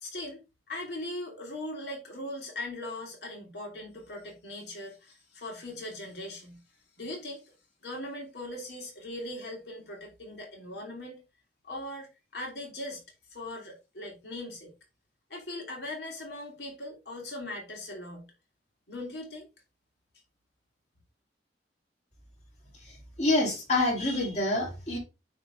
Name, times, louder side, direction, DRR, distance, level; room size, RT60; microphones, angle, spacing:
voice 1, 0.0-6.6 7.0-7.4 7.8-11.2 11.6-12.1 12.3-13.0 13.3-14.7 15.3-18.2 18.9-19.5, left 1 dB, 65° left, 2.9 m, -39 dB
voice 2, 23.2-25.0, left 2 dB, 40° left, 2.9 m, -26 dB
9.4 x 3.5 x 3.5 m
head